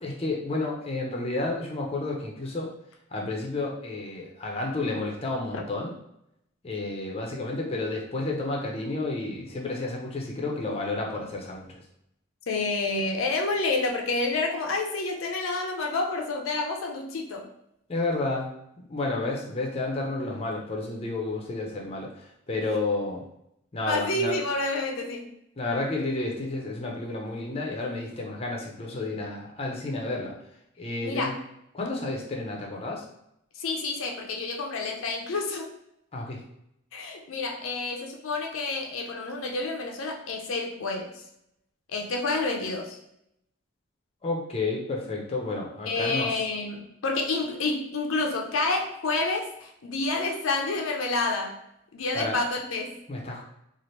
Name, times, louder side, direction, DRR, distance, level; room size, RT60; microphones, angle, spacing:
voice 1, 0.0-2.7 3.1-5.9 6.6-11.8 17.9-18.5 18.9-23.2 23.7-24.4 25.6-30.3 30.8-31.3 31.7-33.0 36.1-36.4 44.2-46.4 52.1-52.4 53.1-53.4, left 2 dB, 30° left, -1 dB, 0.6 m, -31 dB
voice 2, 12.5-17.5 23.9-25.3 31.0-31.4 33.6-35.7 36.9-41.2 41.9-43.0 45.9-51.6 51.9-53.0, left 3 dB, 85° left, 2 dB, 0.5 m, -29 dB
2.8 x 2.5 x 3.1 m, 0.78 s
head